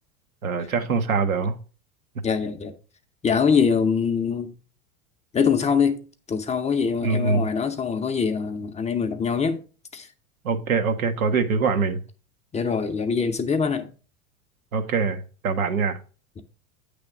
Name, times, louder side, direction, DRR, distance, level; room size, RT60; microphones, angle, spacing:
voice 1, 0.4-1.5 7.0-7.4 10.4-12.0 14.7-16.0, right 5 dB, 80° right, 1.0 m, -23 dB
voice 2, 2.2-2.7 3.2-4.5 5.3-6.0 6.3-9.6 9.9-10.1 12.5-13.9, left 6 dB, 15° left, 0.5 m, -23 dB
8.8 x 3.4 x 4.8 m
hypercardioid pair, 90°, 42 cm